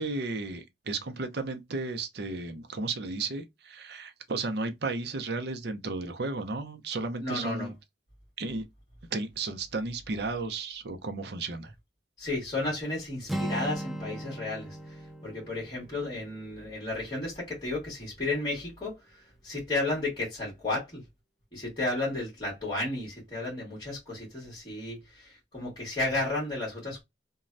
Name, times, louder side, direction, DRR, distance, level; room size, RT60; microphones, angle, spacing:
voice 1, 0.0-7.7 8.4-8.6 9.1-11.7, right 3 dB, 60° right, 0.6 m, -34 dB
voice 2, 7.2-7.7 12.2-21.0 21.5-27.0, left 2 dB, 25° left, 1.6 m, -33 dB
Acoustic guitar, 13.3-17.2, right 1 dB, ahead, 0.3 m, -38 dB
3.0 x 2.3 x 2.5 m
head